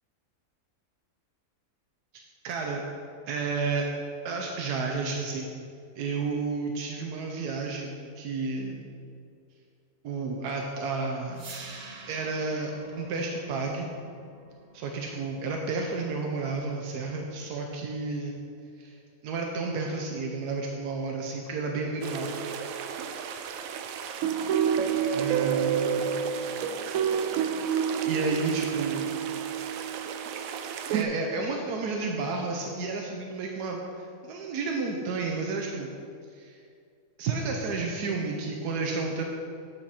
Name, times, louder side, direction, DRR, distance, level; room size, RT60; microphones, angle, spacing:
voice 1, 2.4-2.8 3.3-3.9 4.2-5.5 6.0-8.8 10.0-11.5 12.1-13.9 14.7-18.4 18.8-19.0 19.2-22.3 25.1-26.2 28.0-29.1 30.9-35.9 36.3-36.6 37.2-39.2, right 3 dB, 90° right, 1 dB, 1.3 m, -31 dB
sound 1, 11.3-17.4, right 3 dB, 45° right, 0.5 m, -48 dB
sound 2, 22.0-31.0, right 8 dB, 70° right, 0.9 m, -29 dB
8.8 x 6.4 x 4.2 m, 2.4 s
omnidirectional pair, 1.6 m